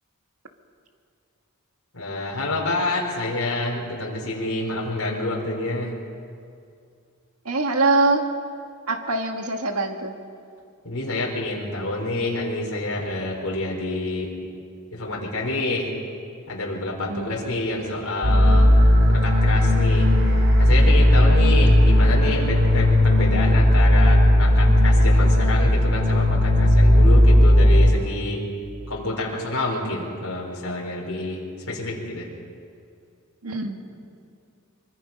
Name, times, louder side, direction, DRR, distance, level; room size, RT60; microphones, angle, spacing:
voice 1, 1.9-6.0 10.8-14.3 14.9-15.9 16.5-18.7 19.1-20.1 20.6-28.4 28.9-32.3, left 2 dB, 70° left, -2 dB, 4.2 m, -28 dB
voice 2, 7.5-8.2 8.9-10.1 17.1-17.4 33.4-33.9, right 3 dB, 80° right, 4 dB, 1.9 m, -23 dB
sound 1, 18.2-27.9, left 1 dB, 60° right, 3.7 m, -16 dB
24.0 x 23.5 x 5.5 m, 2.4 s
head